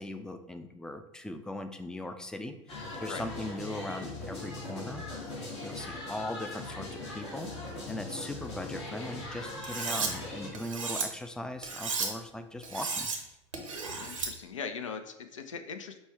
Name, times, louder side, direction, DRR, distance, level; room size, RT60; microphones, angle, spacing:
voice 1, 0.0-5.0 5.6-7.5 7.9-13.1, left 1 dB, 5° left, 8 dB, 0.4 m, -39 dB
sound 1, 2.7-10.5, left 2 dB, 60° left, 1.4 m, -40 dB
Cutlery silverware, 9.6-10.1 10.5-11.0 11.6-12.1 12.6-13.2 13.5-14.3, right 4 dB, 80° right, 0.8 m, -33 dB
voice 2, 14.0-16.0, left 5 dB, 80° left, 8 dB, 0.5 m, -40 dB
5.4 x 2.2 x 4.3 m, 0.91 s
figure-of-eight pair, 75°, 16 cm